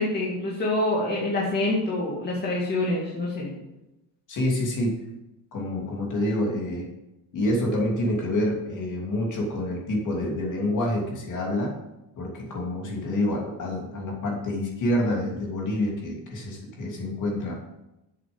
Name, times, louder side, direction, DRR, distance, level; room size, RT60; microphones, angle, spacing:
voice 1, 0.0-3.5, left 2 dB, 25° left, -4 dB, 2.0 m, -26 dB
voice 2, 4.3-5.0 5.5-6.9 7.3-11.7 12.2-17.6, left 1 dB, 45° left, -1 dB, 2.9 m, -27 dB
7.7 x 7.4 x 7.0 m, 0.93 s
cardioid pair, 170°, 42 cm